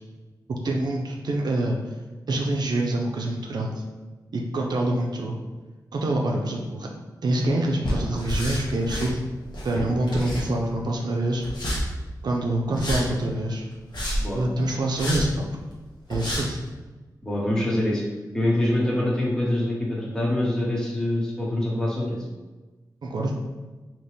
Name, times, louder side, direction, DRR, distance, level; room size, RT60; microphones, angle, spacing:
voice 1, 0.5-1.8 2.3-3.7 4.3-5.4 5.9-6.9 7.2-9.2 9.6-11.4 12.2-13.6 14.3-15.4 16.1-16.6 23.0-23.3, right 1 dB, 70° right, 0 dB, 0.6 m, -26 dB
sound 1, 7.8-9.1 9.5-10.8 11.4-11.8 12.7-13.0 13.7-14.3 15.0-15.2 15.7-15.8 16.1-16.4, equal, 85° left, 1.3 m, -29 dB
voice 2, 17.2-18.0 18.3-22.2, left 1 dB, 10° left, -4 dB, 1.2 m, -25 dB
4.2 x 2.9 x 3.4 m, 1.2 s
wide cardioid pair, 90°, 7 cm